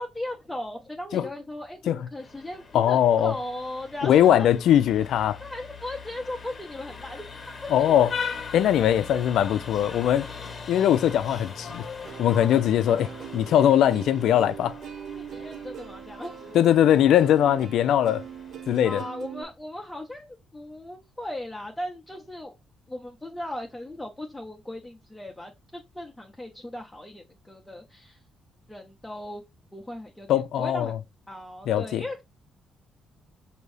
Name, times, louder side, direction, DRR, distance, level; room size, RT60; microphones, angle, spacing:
voice 1, 0.0-4.6 5.4-8.1 9.1-9.2 15.1-16.7 18.8-22.5 22.9-28.2 28.7-29.4 29.7-30.9 31.3-32.2, left 1 dB, 10° left, 0.7 m, -37 dB
Vehicle horn car horn honking, 2.2-19.0, left 5 dB, 35° left, 1.1 m, -41 dB
voice 2, 2.7-3.3 4.0-5.4 7.7-8.1 8.5-10.3 10.7-11.8 12.2-14.8 16.5-18.2 18.7-19.0 30.3-31.0 31.7-32.0, left 10 dB, 80° left, 0.4 m, -21 dB
Plucked string instrument, 12.0-19.4, right 8 dB, 65° right, 0.7 m, -41 dB
5.3 x 2.6 x 3.2 m
cardioid pair, 90°, 0 cm